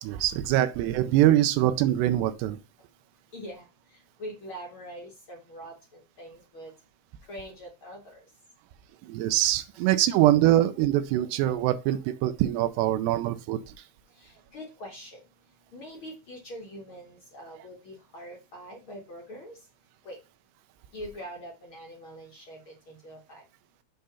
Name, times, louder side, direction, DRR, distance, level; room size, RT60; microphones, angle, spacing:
voice 1, 0.0-2.6 9.1-13.7, right 13 dB, 90° right, 2.8 m, -23 dB
voice 2, 3.3-3.7 4.2-6.7 7.3-8.2 14.2-15.2 15.7-19.6 20.0-20.2 20.9-23.4, equal, 50° left, 1.5 m, -43 dB
7.6 x 3.8 x 5.5 m
omnidirectional pair, 4.8 m